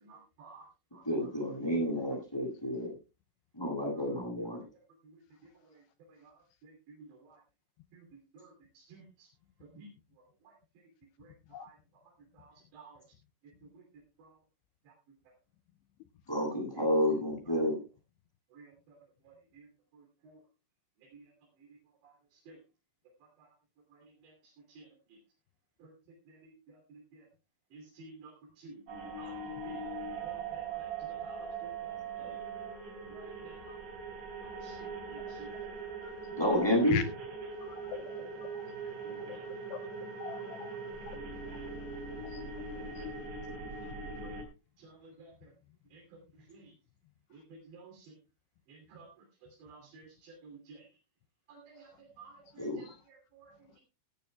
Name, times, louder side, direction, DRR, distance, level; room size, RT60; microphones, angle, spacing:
voice 1, 0.0-0.7 0.9-1.0 6.2-6.3 6.6-7.4 7.9-8.0 8.3-9.3 9.7-9.9 11.2-11.3 11.6-11.7 12.4-13.0 14.2-14.3 18.5-18.7 19.3-19.6 20.2-20.4 21.1-21.2 22.5-22.6 24.8-24.9 25.8-25.9 26.3-26.5 26.9-27.0 27.7-28.8 29.2-29.3 29.6-29.9 30.2-30.9 31.2-32.4 33.1-33.6 34.6-35.5 39.0-39.4 44.2-44.3 44.8-45.3 45.9-46.0 46.5-46.7 47.3-47.4 47.7-48.1 48.7-49.1 49.6-50.8 51.5-51.9 52.2-52.9 53.3-53.5, right 4 dB, 65° right, 0 dB, 5.1 m, -53 dB
voice 2, 1.0-2.9 3.5-4.6 16.3-17.8 36.4-37.0 52.6-52.8, equal, 5° left, -1 dB, 7.6 m, -30 dB
sound 1, 28.9-44.4, right 4 dB, 40° right, 4.9 m, -41 dB
voice 3, 37.6-38.3 39.7-39.8 40.2-40.7 41.1-41.2 42.3-42.4 42.8-43.0, left 10 dB, 85° left, 9 dB, 2.4 m, -39 dB
16.5 x 15.5 x 2.3 m, 0.30 s
omnidirectional pair, 5.6 m